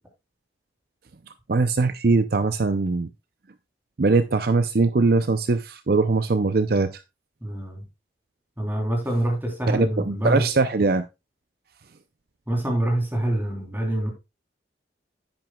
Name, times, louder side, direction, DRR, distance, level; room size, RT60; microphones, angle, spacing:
voice 1, 1.5-3.1 4.0-7.0 9.7-11.1, right 3 dB, 55° right, 0.5 m, -21 dB
voice 2, 7.4-7.8 8.6-10.4 12.5-14.1, right 1 dB, 10° right, 3.4 m, -25 dB
10.5 x 8.9 x 2.3 m
head